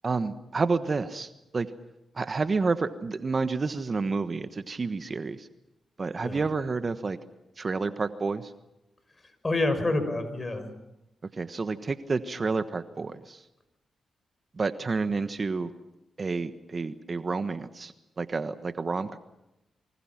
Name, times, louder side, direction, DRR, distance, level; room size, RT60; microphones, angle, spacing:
voice 1, 0.0-1.7 2.2-5.5 6.0-7.2 7.6-8.5 11.4-13.4 14.6-15.7 16.2-17.9 18.2-19.2, right 4 dB, 45° right, 10 dB, 1.3 m, -29 dB
voice 2, 9.4-10.7, left 2 dB, 35° left, 10 dB, 6.1 m, -27 dB
28.0 x 25.0 x 6.0 m, 0.91 s
supercardioid pair, 55°, 0 cm